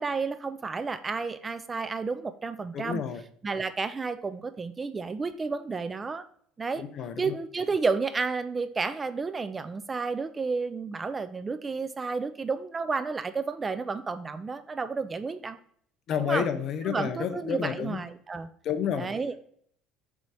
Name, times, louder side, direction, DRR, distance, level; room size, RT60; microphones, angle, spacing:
voice 1, 0.0-3.0 3.4-6.2 6.6-6.8 7.2-15.6 16.2-16.5 16.9-18.5 19.0-19.4, right 4 dB, 20° right, 12 dB, 0.4 m, -31 dB
voice 2, 2.7-3.2 6.8-7.3 16.1-18.0 18.6-19.1, left 7 dB, 45° left, 9 dB, 0.8 m, -30 dB
7.2 x 2.8 x 4.7 m, 0.63 s
cardioid pair, 140°, 0 cm